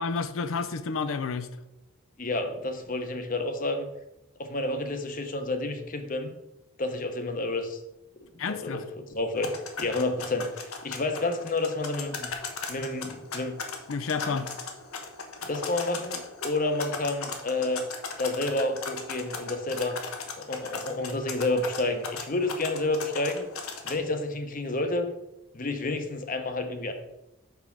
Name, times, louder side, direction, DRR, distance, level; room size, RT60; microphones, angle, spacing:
voice 1, 0.0-1.5 8.4-8.8 13.9-14.5, left 5 dB, 65° left, 11 dB, 0.5 m, -30 dB
voice 2, 2.2-3.9 4.4-6.3 6.8-7.8 8.5-9.5 9.8-12.3 12.7-13.5 14.2-14.4 15.4-17.8 18.2-20.0 20.4-23.5 23.8-25.1 25.5-26.9, left 2 dB, 40° left, 7 dB, 0.8 m, -30 dB
sound 1, 9.4-23.9, left 4 dB, 80° left, 1.1 m, -38 dB
5.9 x 4.9 x 6.0 m, 0.90 s
head